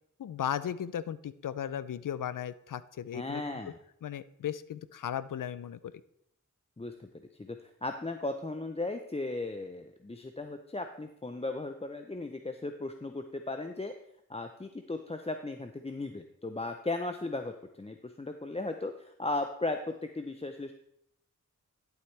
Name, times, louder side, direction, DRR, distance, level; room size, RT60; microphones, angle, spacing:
voice 1, 0.2-3.6 4.0-5.9, left 9 dB, 80° left, 16 dB, 0.5 m, -36 dB
voice 2, 3.1-3.7 6.8-7.1 7.4-13.9 14.3-20.7, left 2 dB, 20° left, 6 dB, 0.6 m, -36 dB
11.5 x 7.9 x 3.3 m, 0.75 s
cardioid pair, 45°, 32 cm